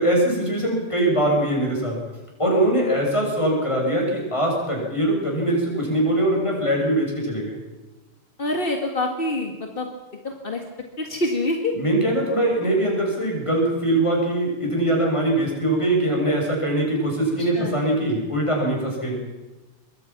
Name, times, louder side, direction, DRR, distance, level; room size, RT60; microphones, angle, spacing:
voice 1, 0.0-2.0 2.4-7.6 11.8-19.2, right 1 dB, 10° left, -2 dB, 7.3 m, -22 dB
voice 2, 8.4-9.9 10.2-10.6 11.0-11.7 17.4-17.7, left 2 dB, 25° left, 3 dB, 1.2 m, -26 dB
25.5 x 22.0 x 6.0 m, 1.2 s
omnidirectional pair, 3.8 m